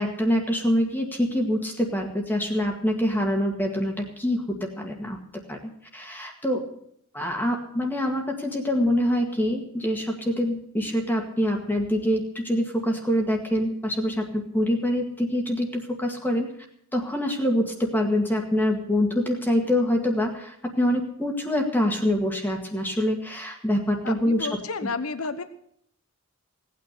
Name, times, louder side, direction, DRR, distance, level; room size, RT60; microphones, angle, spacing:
voice 1, 0.0-5.2 5.5-5.6 5.9-6.6 7.1-16.5 16.9-24.5 24.8-24.9, left 1 dB, 10° left, 2 dB, 1.8 m, -25 dB
voice 2, 24.0-25.4, left 4 dB, 85° left, 11 dB, 1.0 m, -31 dB
17.5 x 9.3 x 6.7 m, 0.68 s
head